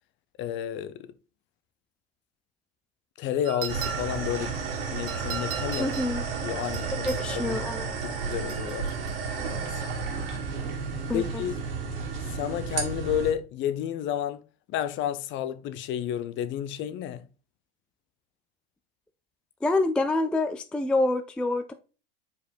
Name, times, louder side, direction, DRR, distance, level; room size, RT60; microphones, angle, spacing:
voice 1, 0.4-1.1 3.2-4.6 4.9-5.9 6.4-7.2 7.5-7.6 8.0-8.9 9.5-9.9 11.1-11.5 12.3-14.4 14.7-17.2, left 10 dB, 40° left, 0.7 m, -31 dB
sound 1, 3.5-4.3 5.1-6.1 6.7-7.3 8.3-9.2, right 7 dB, 45° right, 1.7 m, -38 dB
sound 2, 3.7-13.3, right 5 dB, 70° right, 2.0 m, -32 dB
voice 2, 5.8-6.3 7.0-7.9 11.1-11.4 19.6-21.7, left 2 dB, 5° left, 0.3 m, -27 dB
5.0 x 4.8 x 4.4 m
hypercardioid pair, 100°, 30 cm